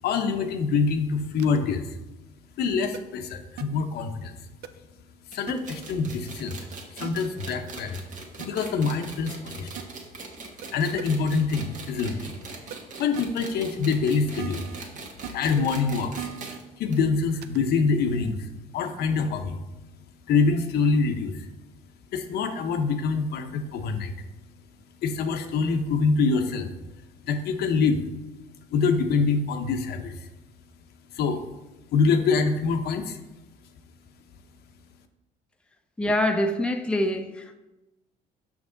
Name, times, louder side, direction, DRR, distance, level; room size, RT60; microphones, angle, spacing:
voice 1, 0.0-2.0 2.6-4.3 5.3-6.7 6.9-8.0 8.4-9.7 10.7-12.4 13.0-14.6 15.3-16.3 16.8-19.6 20.3-21.5 22.1-24.1 25.0-26.7 27.2-28.0 28.7-30.3 31.1-31.4 31.9-33.2, left 4 dB, 70° left, 0.8 m, -25 dB
sound 1, 1.4-1.6 2.9-3.0 3.6-3.7 4.6-4.7 5.5-5.6 7.0-7.1 8.4-8.5 9.8-9.9 10.6-10.7 11.0-11.1 12.7-12.8 13.1-13.2 14.4-14.8 15.2-15.3 16.2-16.6 17.4-17.6, right 11 dB, 70° right, 0.5 m, -36 dB
sound 2, 5.3-16.6 16.9-17.0 17.3-17.4 18.2-18.3, right 4 dB, 50° right, 1.2 m, -41 dB
voice 2, 36.0-37.5, left 1 dB, 5° left, 0.5 m, -25 dB
6.1 x 6.0 x 3.8 m
cardioid pair, 110°, 17 cm